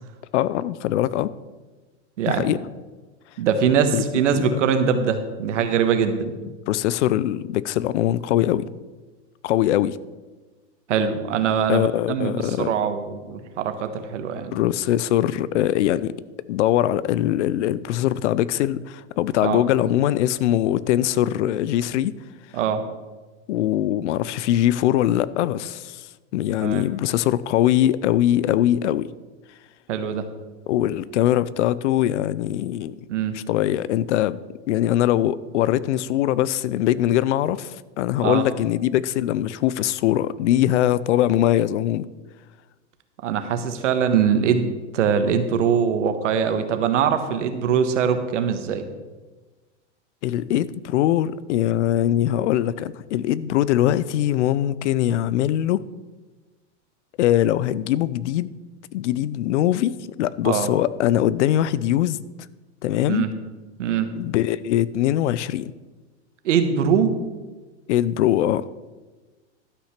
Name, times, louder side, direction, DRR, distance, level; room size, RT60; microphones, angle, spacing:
voice 1, 0.3-1.3 2.3-2.6 3.9-4.6 6.7-8.6 9.4-10.0 11.7-12.7 14.5-16.1 16.5-22.1 23.5-26.1 26.3-29.1 30.7-32.9 33.3-34.4 34.7-42.1 50.2-55.8 57.2-58.5 58.9-62.2 62.8-63.3 64.2-65.7 67.9-68.7, left 12 dB, 75° left, 0.6 m, -22 dB
voice 2, 2.2-2.5 3.4-6.3 10.9-14.5 19.4-19.6 22.5-22.8 26.6-26.8 29.9-30.3 33.1-33.4 38.2-38.5 43.2-44.7 44.9-48.8 60.4-60.7 63.1-63.3 63.8-64.1 66.4-67.2, right 7 dB, 85° right, 1.4 m, -22 dB
12.0 x 5.7 x 5.9 m
supercardioid pair, 135°, 35 cm